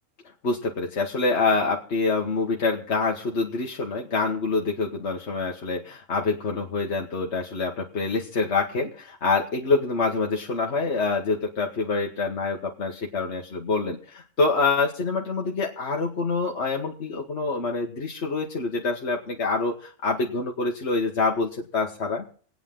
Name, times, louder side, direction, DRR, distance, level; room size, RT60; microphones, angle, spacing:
voice 1, 0.4-22.2, left 3 dB, 55° left, 0 dB, 1.7 m, -26 dB
26.0 x 9.1 x 3.8 m, 0.43 s
omnidirectional pair, 1.4 m